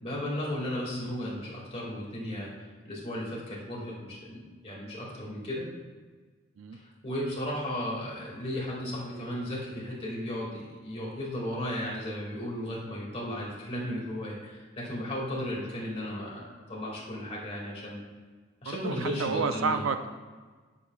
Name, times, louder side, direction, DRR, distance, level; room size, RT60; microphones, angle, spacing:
voice 1, 0.0-2.5 2.8-5.7 6.7-18.0 18.6-19.8, left 1 dB, 30° left, -5 dB, 2.1 m, -35 dB
voice 2, 18.7-20.1, right 5 dB, 75° right, 9 dB, 0.4 m, -30 dB
9.7 x 7.0 x 2.3 m, 1.4 s
head